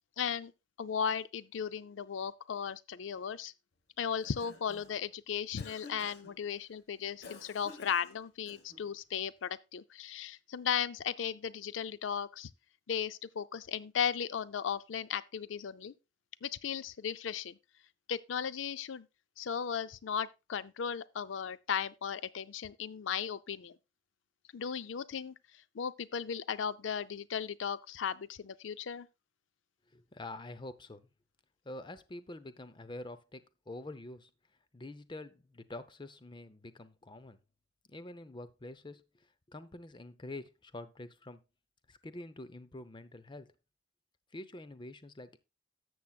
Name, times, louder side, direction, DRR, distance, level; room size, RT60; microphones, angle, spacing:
voice 1, 0.2-0.5 0.8-3.5 4.0-12.5 12.9-15.9 16.4-17.6 18.1-19.1 19.4-23.8 24.5-29.1, left 7 dB, 85° left, 0.5 m, -36 dB
Cough, 4.0-5.0 5.6-6.4 7.2-8.9, left 3 dB, 60° left, 1.3 m, -52 dB
voice 2, 29.9-31.1 31.6-34.3 34.7-37.4 37.9-41.4 41.9-43.5 44.3-45.4, left 2 dB, 25° left, 0.7 m, -46 dB
13.0 x 7.8 x 2.3 m
head